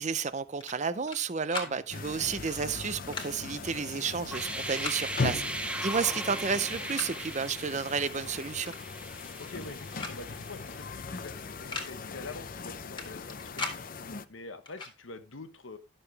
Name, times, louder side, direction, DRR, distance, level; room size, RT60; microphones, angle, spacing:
voice 1, 0.0-5.4 5.8-8.7, right 5 dB, 35° right, 0.6 m, -31 dB
sound 1, 0.6-1.2 1.5-1.8 2.9-3.3 4.6-5.0 6.1-6.2 6.6-7.3 8.7-8.8 9.1-9.7 10.0-10.2 10.4-10.5 11.5-11.9 13.0-13.8 14.7-14.9, left 3 dB, 25° left, 1.8 m, -39 dB
sound 2, 1.9-14.3, left 4 dB, 45° left, 0.6 m, -39 dB
sound 3, 4.2-11.1, right 2 dB, 5° right, 0.8 m, -39 dB
voice 2, 9.4-13.9 14.3-15.8, left 3 dB, 90° left, 1.1 m, -46 dB
11.5 x 6.7 x 3.3 m
head